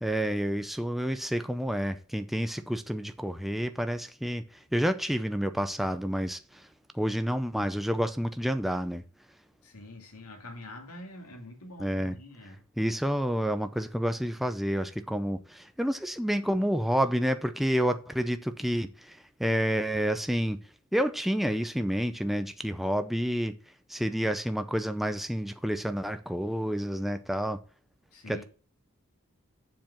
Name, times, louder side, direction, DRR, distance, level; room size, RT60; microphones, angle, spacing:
voice 1, 0.0-4.4 4.7-6.6 6.9-9.0 11.8-12.1 12.8-20.6 20.9-23.6 23.9-27.6 28.3-28.4, equal, ahead, 0.5 m, -29 dB
voice 2, 9.6-12.6 28.1-28.4, left 1 dB, 85° left, 2.3 m, -45 dB
7.5 x 4.8 x 7.2 m
head